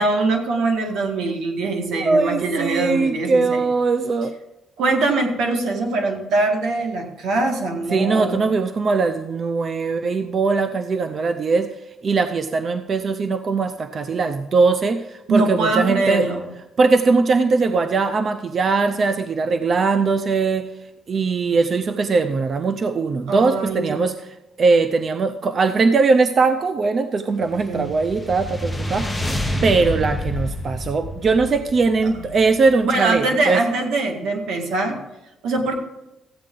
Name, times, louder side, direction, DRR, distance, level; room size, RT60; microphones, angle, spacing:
voice 1, 0.0-3.6 4.8-8.4 15.3-16.5 23.3-24.0 27.6-27.9 32.1-32.2 32.8-35.0 35.4-35.8, right 3 dB, 90° right, 2 dB, 1.8 m, -22 dB
voice 2, 1.9-4.3 7.9-11.7 12.0-16.3 16.8-20.6 21.1-24.1 24.6-33.6, right 4 dB, 45° right, 9 dB, 0.5 m, -20 dB
sound 1, 27.5-32.9, left 1 dB, ahead, 1.2 m, -28 dB
14.0 x 8.7 x 3.8 m, 0.94 s
cardioid pair, 120°, 0 cm